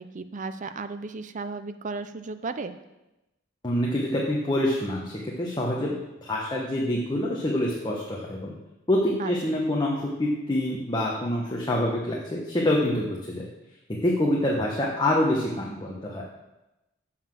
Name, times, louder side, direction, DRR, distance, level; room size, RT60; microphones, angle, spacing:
voice 1, 0.0-2.7 9.2-9.6, right 3 dB, 40° right, 10 dB, 0.5 m, -35 dB
voice 2, 3.6-8.5 8.9-13.5 14.0-16.2, left 1 dB, 25° left, -3 dB, 1.1 m, -26 dB
7.2 x 5.7 x 7.4 m, 0.97 s
head